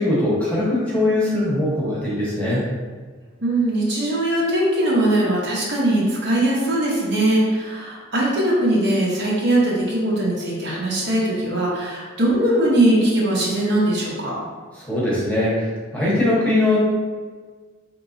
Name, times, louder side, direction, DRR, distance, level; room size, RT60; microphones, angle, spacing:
voice 1, 0.0-2.6 14.8-16.8, left 1 dB, 5° left, -8 dB, 1.0 m, -21 dB
voice 2, 3.4-14.4, right 1 dB, 60° right, -5 dB, 0.9 m, -20 dB
4.3 x 3.1 x 2.7 m, 1.5 s
head